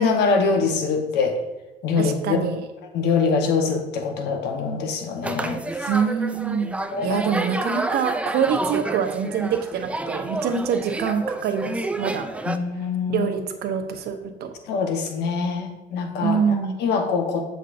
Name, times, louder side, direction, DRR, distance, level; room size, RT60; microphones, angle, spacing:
voice 1, 0.0-1.4 1.8-2.4 2.9-5.9 6.9-7.2 12.5-13.3 14.7-17.5, left 5 dB, 80° left, 4 dB, 1.1 m, -24 dB
voice 2, 2.0-2.6 5.9-6.8 7.0-12.3 13.1-14.5 16.2-16.8, right 7 dB, 70° right, 6 dB, 0.8 m, -25 dB
sound 1, 5.2-12.6, right 2 dB, 5° right, 0.3 m, -29 dB
7.7 x 5.3 x 2.6 m, 1.0 s
cardioid pair, 110°, 17 cm